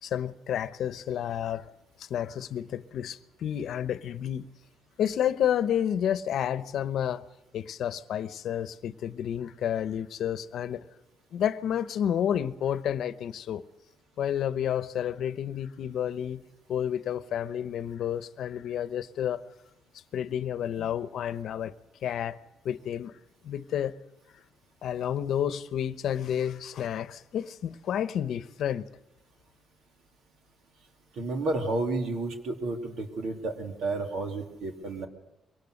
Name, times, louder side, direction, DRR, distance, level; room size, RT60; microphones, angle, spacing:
voice 1, 0.0-1.7 2.0-4.5 5.0-7.2 7.5-10.8 11.3-13.6 14.2-16.4 16.7-19.4 20.1-21.7 22.0-22.4 22.6-23.2 23.4-23.9 24.8-28.9, left 9 dB, 70° left, 0.9 m, -30 dB
voice 2, 31.1-35.1, right 2 dB, 80° right, 3.2 m, -31 dB
23.0 x 18.0 x 6.6 m
cardioid pair, 90°, 0 cm